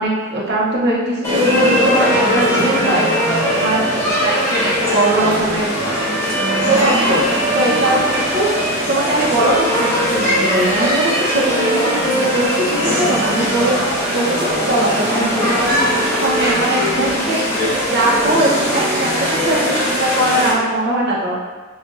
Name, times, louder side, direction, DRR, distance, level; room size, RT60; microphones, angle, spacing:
voice 1, 0.0-5.8 6.7-8.5 8.9-13.8 14.1-14.3 14.6-17.5 17.9-19.1 19.4-21.5, right 1 dB, 55° right, -5 dB, 0.9 m, -20 dB
sound 1, 1.2-20.5, equal, 10° left, 1.2 m, -19 dB
6.2 x 2.5 x 2.5 m, 1.3 s
head